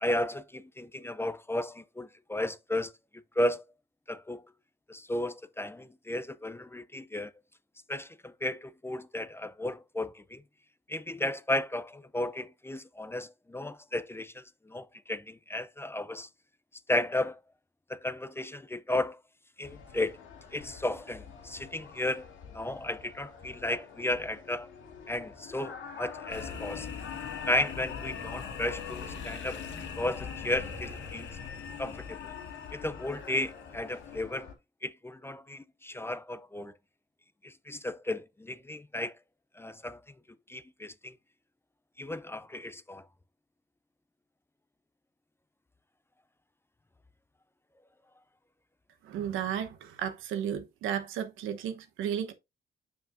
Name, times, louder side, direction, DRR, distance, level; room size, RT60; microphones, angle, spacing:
voice 1, 0.0-2.9 3.4-3.6 4.1-4.4 4.9-7.3 7.9-10.4 10.9-16.3 16.9-17.4 17.9-19.2 19.6-20.2 20.5-22.3 22.5-24.7 25.1-26.9 27.5-29.6 30.0-31.3 31.8-32.3 32.7-34.5 34.8-36.7 37.4-39.2 39.5-40.0 40.5-41.2 42.0-43.1, left 1 dB, 10° left, 0.5 m, -34 dB
sound 1, 19.6-34.5, left 7 dB, 85° left, 2.2 m, -46 dB
sound 2, 26.3-34.2, left 6 dB, 70° left, 1.8 m, -42 dB
voice 2, 49.0-52.3, right 9 dB, 90° right, 1.1 m, -33 dB
7.3 x 5.7 x 2.6 m
cardioid pair, 90°, 20 cm